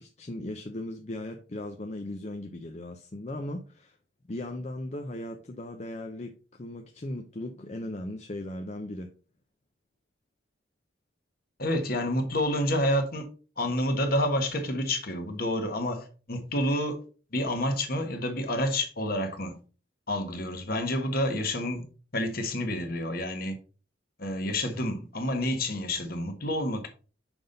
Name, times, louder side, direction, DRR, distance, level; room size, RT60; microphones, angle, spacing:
voice 1, 0.0-4.0 4.3-9.1, left 1 dB, 35° left, 0.6 m, -37 dB
voice 2, 11.6-13.3 13.6-17.0 17.3-19.6 20.1-21.8 22.1-23.6 24.2-26.9, left 1 dB, 50° left, 1.3 m, -29 dB
6.0 x 5.3 x 3.9 m
head